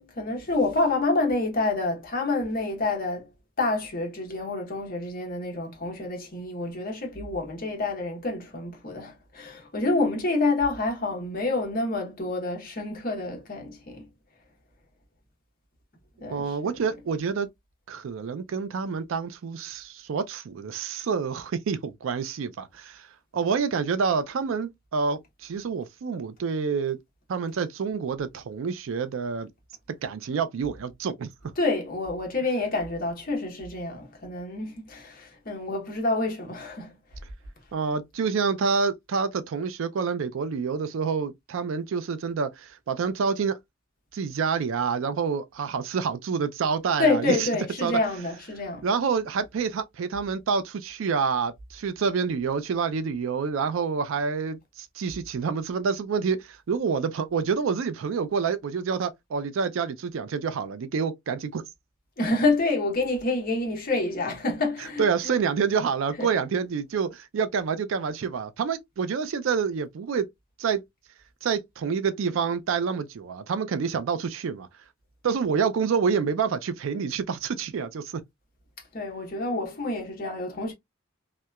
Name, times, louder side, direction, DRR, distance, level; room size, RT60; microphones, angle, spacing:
voice 1, 0.0-3.3 3.6-14.1 16.2-16.7 31.6-37.0 47.0-48.9 62.2-65.4 66.2-66.3 78.9-80.7, left 2 dB, 45° left, 0.9 m, -28 dB
voice 2, 16.3-17.5 17.9-23.1 23.3-27.0 27.3-29.5 30.0-31.3 37.7-43.6 44.1-47.5 47.8-48.0 48.8-61.6 65.0-70.3 70.6-70.8 71.4-74.7 75.2-78.2, right 5 dB, 65° right, 0.4 m, -27 dB
2.8 x 2.1 x 2.2 m
head